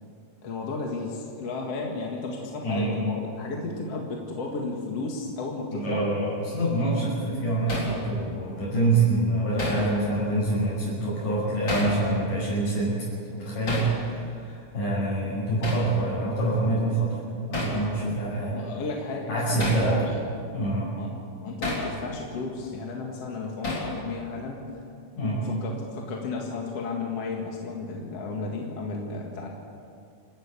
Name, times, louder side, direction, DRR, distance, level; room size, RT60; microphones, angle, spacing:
voice 1, 0.4-6.0 15.3-15.5 18.5-20.0 20.9-21.1 21.4-24.6 25.4-29.5, left 3 dB, 50° left, -1 dB, 2.8 m, -33 dB
voice 2, 2.6-3.0 5.7-13.0 13.3-17.1 17.5-18.6 19.3-20.0 20.5-20.9 25.2-25.4, right 2 dB, 70° left, -9 dB, 7.9 m, -26 dB
Hammer, 7.7-8.0 9.6-9.9 11.7-12.0 13.7-13.9 15.6-15.9 17.5-17.8 19.6-19.9 21.6-21.9 23.6-23.9, left 1 dB, 35° left, 4.6 m, -29 dB
29.0 x 12.5 x 8.3 m, 2.4 s
omnidirectional pair, 3.9 m